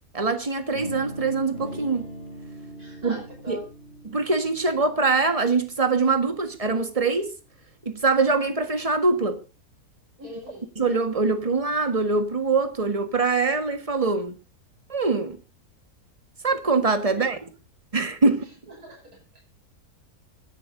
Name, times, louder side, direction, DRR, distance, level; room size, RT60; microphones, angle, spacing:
voice 1, 0.1-2.1 3.0-3.2 3.5-3.6 4.0-7.3 7.8-9.4 10.7-14.4 14.9-15.4 16.4-17.4 17.9-18.4, right 3 dB, 20° right, 1.6 m, -23 dB
sound 1, 0.7-6.7, equal, 40° left, 6.6 m, -41 dB
voice 2, 2.8-3.6 10.2-10.7 17.1-17.4 18.2-18.3 18.7-19.4, equal, 65° right, 6.8 m, -42 dB
24.5 x 11.5 x 2.7 m
omnidirectional pair, 1.7 m